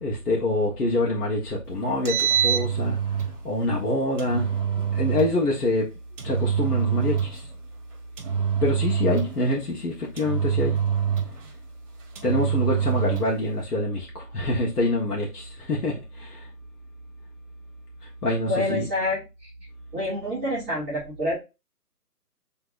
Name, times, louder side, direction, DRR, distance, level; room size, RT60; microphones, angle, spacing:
voice 1, 0.0-3.0 3.4-4.5 4.9-5.9 6.2-7.4 8.6-10.8 12.2-16.4 18.2-18.8, left 2 dB, 70° left, 1.5 m, -26 dB
Engine, 1.9-3.4 4.2-5.4 6.2-7.5 8.2-9.5 10.2-11.5 12.2-13.4, right 8 dB, 50° right, 1.2 m, -25 dB
voice 2, 18.4-19.5 19.9-21.3, left 1 dB, 10° right, 0.9 m, -27 dB
6.1 x 3.4 x 2.5 m
figure-of-eight pair, 150°, 47 cm